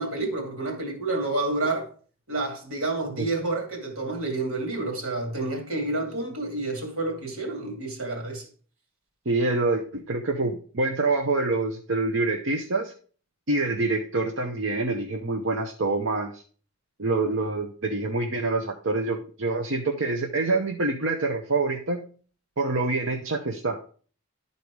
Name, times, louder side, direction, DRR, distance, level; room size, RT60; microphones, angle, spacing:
voice 1, 0.0-1.9 2.3-8.4, right 2 dB, 75° right, 2.7 m, -29 dB
voice 2, 9.3-12.9 13.5-16.4 17.0-22.0 22.6-23.8, right 3 dB, 60° right, 0.8 m, -26 dB
12.0 x 4.1 x 4.8 m
head